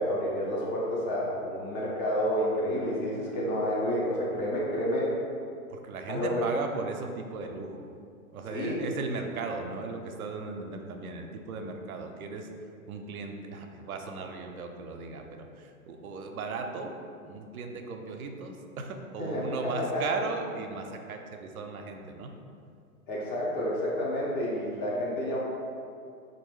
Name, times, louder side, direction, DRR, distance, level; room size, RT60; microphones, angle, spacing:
voice 1, 0.0-5.1 6.1-6.4 8.5-8.9 19.2-20.0 23.1-25.4, equal, 20° left, -5 dB, 0.5 m, -29 dB
voice 2, 5.7-7.8 8.3-12.5 12.9-17.0 17.2-22.4, right 4 dB, 75° right, 4 dB, 0.5 m, -37 dB
3.2 x 2.6 x 3.0 m, 2.4 s
hypercardioid pair, 110°, 43 cm